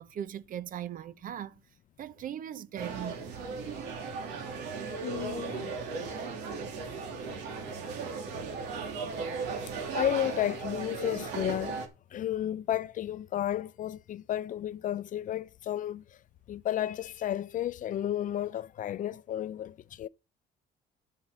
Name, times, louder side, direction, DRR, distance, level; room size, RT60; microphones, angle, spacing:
voice 1, 0.0-1.6 2.0-3.2, right 10 dB, 55° right, 0.8 m, -39 dB
sound 1, 2.8-11.9, right 4 dB, 85° right, 2.7 m, -36 dB
voice 2, 5.0-5.7 9.9-11.8 12.1-16.0 16.5-20.1, left 11 dB, 50° left, 0.6 m, -32 dB
11.0 x 5.9 x 6.3 m
cardioid pair, 110°, 17 cm